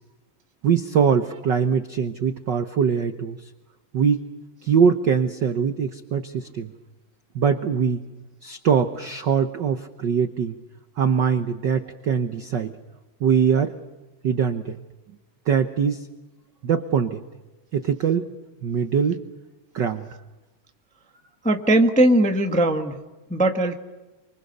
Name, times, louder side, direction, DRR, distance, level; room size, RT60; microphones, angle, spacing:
voice 1, 0.6-3.5 3.9-4.2 4.6-6.7 7.3-8.0 8.4-10.6 11.0-12.7 13.2-13.7 14.2-14.8 15.5-16.1 16.6-17.2 17.7-18.3 18.6-19.2 19.7-20.1, right 7 dB, 70° right, 8 dB, 1.0 m, -22 dB
voice 2, 21.4-23.0 23.3-23.8, right 1 dB, 5° left, 4 dB, 0.8 m, -19 dB
28.5 x 25.5 x 6.8 m, 1.1 s
omnidirectional pair, 3.4 m